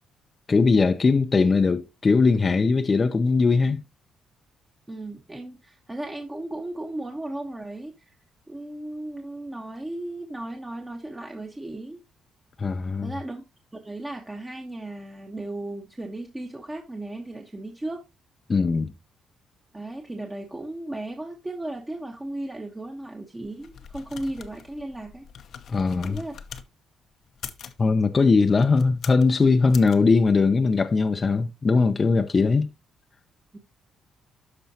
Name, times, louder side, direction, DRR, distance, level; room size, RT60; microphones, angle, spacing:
voice 1, 0.5-3.8 12.6-13.1 18.5-18.9 25.7-26.2 27.8-32.7, left 4 dB, 35° left, 0.6 m, -20 dB
voice 2, 4.9-8.2 8.5-12.0 13.0-13.4 13.7-18.0 19.7-25.2 26.0-26.3 33.5-33.6, right 1 dB, 15° right, 1.1 m, -35 dB
sound 1, 23.4-26.7 27.3-27.8 28.5-29.3 29.7-30.0, left 7 dB, 65° left, 0.8 m, -42 dB
12.5 x 4.5 x 2.8 m
cardioid pair, 90°, 0 cm